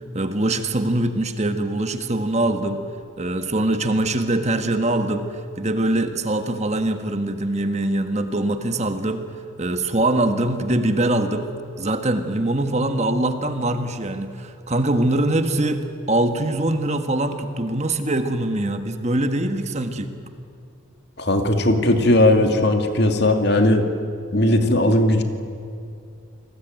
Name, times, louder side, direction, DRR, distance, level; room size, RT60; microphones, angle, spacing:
voice 1, 0.1-2.8 3.2-9.2 9.6-11.5 11.8-20.1, right 1 dB, 30° right, 7 dB, 1.5 m, -23 dB
voice 2, 21.2-23.9 24.3-25.2, left 1 dB, 50° left, 6 dB, 2.4 m, -18 dB
29.0 x 20.0 x 9.3 m, 2.5 s
head